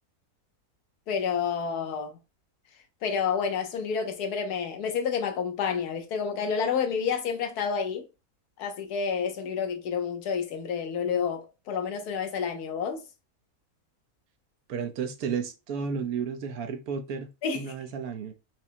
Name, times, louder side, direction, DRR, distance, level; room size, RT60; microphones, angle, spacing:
voice 1, 1.1-2.2 3.0-8.0 8.6-13.0 17.4-17.7, left 6 dB, 85° left, 1.3 m, -29 dB
voice 2, 14.7-17.3 17.5-18.3, right 6 dB, 75° right, 1.1 m, -32 dB
4.8 x 2.1 x 2.7 m
omnidirectional pair, 1.6 m